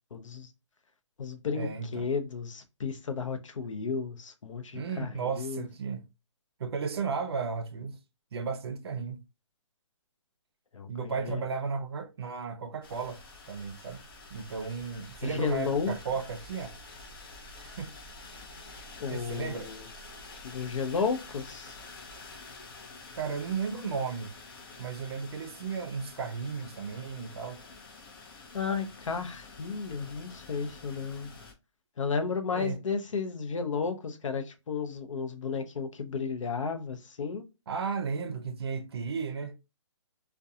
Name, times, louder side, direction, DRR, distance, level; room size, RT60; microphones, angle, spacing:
voice 1, 0.1-0.5 1.2-5.7 10.7-11.4 15.2-15.9 19.0-19.9 20.4-21.8 28.5-31.3 32.0-37.4, left 5 dB, 80° left, 0.7 m, -33 dB
voice 2, 1.5-2.1 4.7-6.0 6.6-8.0 8.3-9.2 10.9-13.2 13.5-14.0 14.3-16.8 17.6-17.9 19.1-19.7 23.1-24.3 24.8-27.6 32.5-32.8 37.7-39.6, right 5 dB, 55° right, 0.5 m, -34 dB
sound 1, 12.8-31.5, left 3 dB, 50° left, 0.6 m, -48 dB
2.3 x 2.2 x 2.7 m
hypercardioid pair, 165°, 16 cm